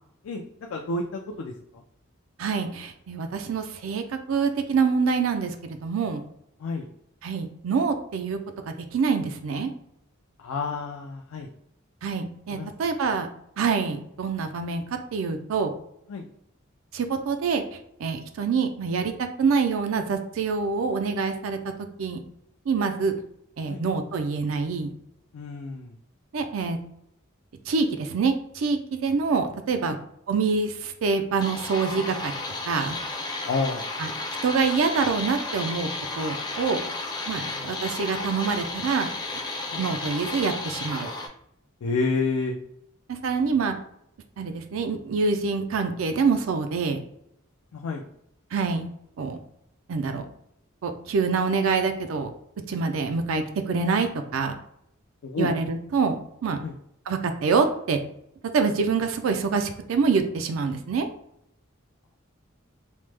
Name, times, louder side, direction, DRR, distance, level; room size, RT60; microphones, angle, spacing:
voice 1, 0.7-1.8 6.6-6.9 10.4-11.5 12.5-12.7 16.1-16.2 23.7-23.8 25.3-26.0 29.9-30.0 33.4-33.8 37.4-37.7 39.7-39.8 41.8-42.6 47.7-48.0 55.2-55.5 56.6-56.7, left 3 dB, 90° left, 2 dB, 0.4 m, -29 dB
voice 2, 2.4-4.0 4.3-6.2 7.2-8.4 8.9-9.7 12.0-13.3 13.6-14.8 15.1-15.7 16.9-17.6 18.0-19.1 19.4-21.6 22.0-22.2 22.7-23.1 23.6-24.9 26.3-26.8 27.7-30.0 30.3-32.3 32.7-33.0 34.0-34.1 34.4-35.9 36.2-36.8 37.3-39.1 39.8-41.1 43.1-43.7 44.4-47.0 48.5-48.9 49.2-49.4 49.9-50.3 50.8-52.3 52.7-54.5 55.4-56.6 57.1-58.0 58.5-61.1, right 5 dB, 75° right, 7 dB, 0.4 m, -25 dB
sound 1, 31.4-41.3, left 3 dB, 20° left, 0.4 m, -33 dB
3.0 x 2.0 x 3.2 m, 0.75 s
head